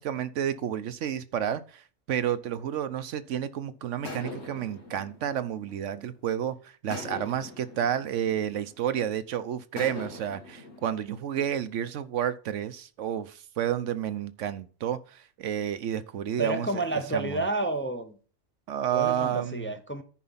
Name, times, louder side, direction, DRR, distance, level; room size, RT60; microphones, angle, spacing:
voice 1, 0.0-16.8 17.1-17.5 18.7-19.7, right 10 dB, 70° right, 1.0 m, -30 dB
sound 1, 4.0-6.3 6.9-9.1 9.8-12.0, left 3 dB, 55° left, 2.0 m, -43 dB
voice 2, 16.4-18.2 18.9-20.0, right 2 dB, 10° left, 0.6 m, -30 dB
10.5 x 5.0 x 5.6 m
omnidirectional pair, 1.3 m